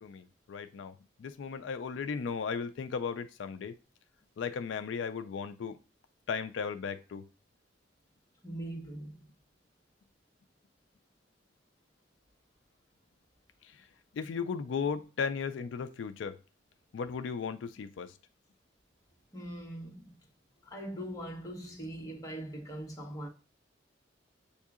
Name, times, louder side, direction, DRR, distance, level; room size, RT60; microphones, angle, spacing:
voice 1, 0.0-3.8 4.4-5.8 6.3-7.2 13.6-13.9 14.1-16.4 16.9-18.1, left 6 dB, 85° left, 0.4 m, -36 dB
voice 2, 8.4-9.2 19.3-20.2 20.6-23.3, right 1 dB, 20° left, 1.2 m, -41 dB
6.9 x 2.7 x 2.3 m
head